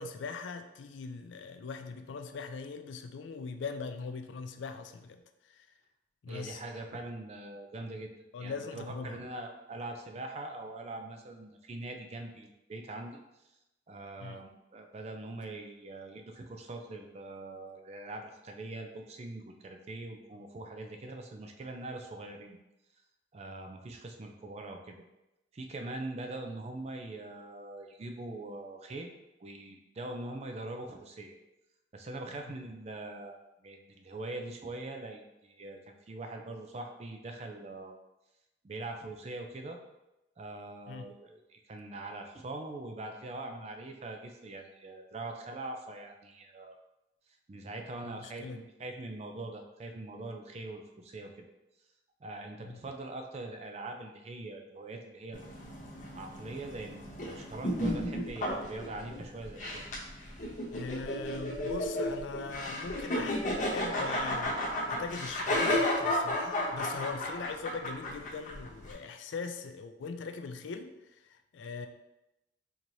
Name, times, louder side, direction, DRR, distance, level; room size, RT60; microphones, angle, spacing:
voice 1, 0.0-5.2 5.5-5.7 6.2-6.6 8.3-9.2 14.2-14.4 32.3-32.4 40.9-41.1 48.0-48.6 52.6-52.8 60.7-63.4 63.7-71.9, left 4 dB, 80° left, 7 dB, 0.4 m, -41 dB
voice 2, 6.3-8.1 8.4-13.2 13.9-22.6 23.3-24.9 25.5-29.1 29.4-31.4 31.9-37.9 38.6-39.8 40.4-46.8 47.5-51.3 52.2-55.4 56.1-59.8, right 2 dB, 35° right, 4 dB, 0.4 m, -42 dB
sound 1, 55.3-68.9, left 1 dB, 45° left, 0.8 m, -33 dB
4.5 x 2.9 x 2.6 m, 0.93 s
head